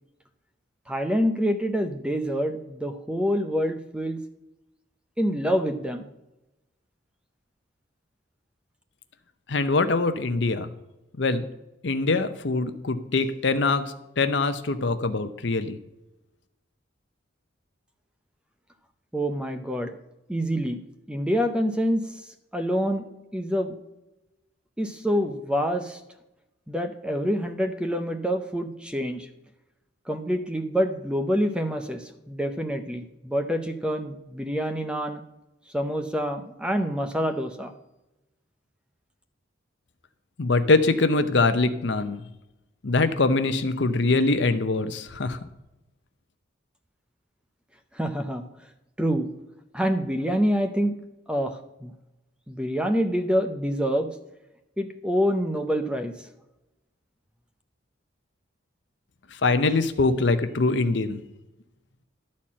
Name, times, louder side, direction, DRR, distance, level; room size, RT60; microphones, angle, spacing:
voice 1, 0.9-4.2 5.2-6.1 19.1-20.0 20.3-20.8 21.1-22.0 22.5-23.0 23.3-23.7 24.8-26.0 26.7-29.3 30.1-35.2 35.7-37.7 47.9-48.4 49.0-49.3 49.7-50.9 51.3-51.9 52.5-54.1 54.8-56.3, equal, 5° right, 7 dB, 0.6 m, -26 dB
voice 2, 9.5-10.7 11.2-11.5 11.8-15.8 40.4-42.2 42.8-45.4 59.4-61.2, left 3 dB, 65° left, 10 dB, 0.7 m, -23 dB
11.5 x 4.3 x 7.4 m, 0.95 s
head